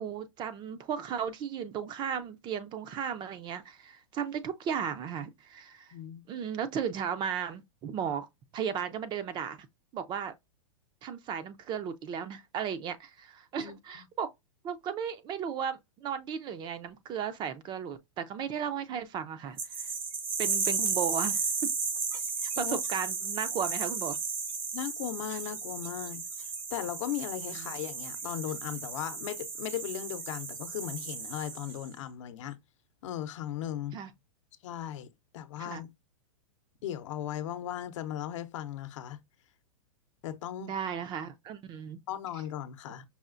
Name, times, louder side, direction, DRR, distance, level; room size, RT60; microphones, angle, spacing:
voice 1, 0.0-5.9 6.3-8.3 8.5-9.7 9.9-10.3 11.0-14.3 14.6-19.9 20.4-21.4 22.4-24.2 27.5-27.8 33.9-34.1 35.6-35.8 40.6-42.0, right 8 dB, 25° right, 0.4 m, -35 dB
voice 2, 5.9-6.2 13.6-14.0 22.5-22.8 24.7-26.2 26.7-32.6 33.0-34.0 34.6-35.1 35.3-35.9 36.8-39.2 40.2-40.7 42.1-43.0, left 11 dB, 65° left, 0.7 m, -37 dB
sound 1, 19.6-31.9, right 5 dB, 80° right, 2.1 m, -34 dB
5.5 x 2.3 x 2.5 m
hypercardioid pair, 125°, 17 cm